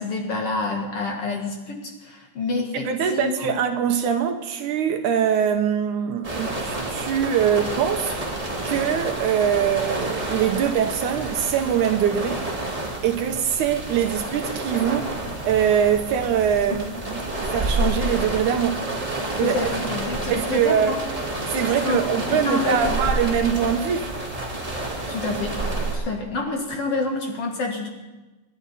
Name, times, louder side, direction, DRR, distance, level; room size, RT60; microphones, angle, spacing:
voice 1, 0.0-3.5 16.7-16.8 19.4-21.0 21.8-23.0 25.1-25.6 25.9-27.9, left 3 dB, 50° left, 2.2 m, -28 dB
voice 2, 2.7-8.1 8.6-12.4 13.0-15.1 15.4-18.8 19.4-19.6 20.3-20.9 21.5-24.2, right 8 dB, 75° right, 2.1 m, -23 dB
sound 1, 6.2-26.0, right 2 dB, 10° right, 2.2 m, -29 dB
27.5 x 11.5 x 4.1 m
omnidirectional pair, 3.9 m